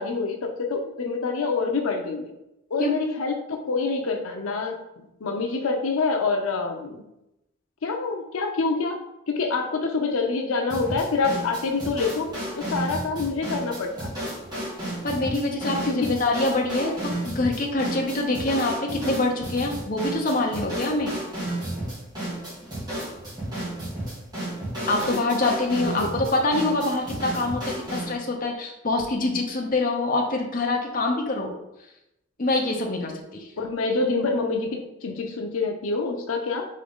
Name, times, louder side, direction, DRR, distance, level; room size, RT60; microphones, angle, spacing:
voice 1, 0.0-2.3 2.7-7.0 7.8-9.0 9.3-12.3 12.6-14.2 15.9-16.1 25.0-25.2 25.8-26.1 33.6-36.7, left 4 dB, 90° left, 4 dB, 0.6 m, -26 dB
sound 1, 10.7-28.2, right 1 dB, 20° right, 1.7 m, -32 dB
voice 2, 15.0-21.2 24.9-31.5 32.4-33.5, left 2 dB, 40° left, 1 dB, 0.7 m, -25 dB
3.7 x 3.7 x 3.6 m, 0.87 s
head